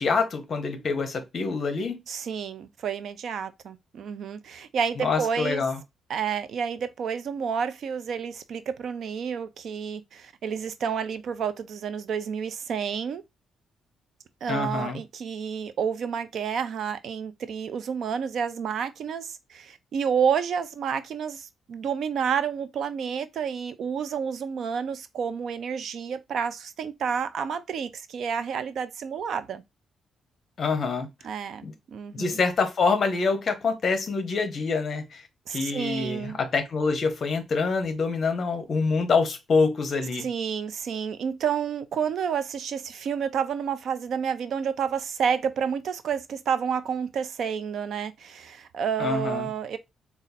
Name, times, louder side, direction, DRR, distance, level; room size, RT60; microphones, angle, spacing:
voice 1, 0.0-2.0 5.0-5.8 14.5-15.0 30.6-31.1 31.6-31.7 32.1-35.2 35.5-40.3 49.0-49.5, left 4 dB, 35° left, 0.9 m, -26 dB
voice 2, 2.1-5.6 6.1-13.2 14.4-29.6 31.2-32.4 35.5-36.4 40.2-49.8, right 7 dB, 55° right, 0.4 m, -30 dB
4.1 x 2.4 x 4.0 m
cardioid pair, 170°, 0 cm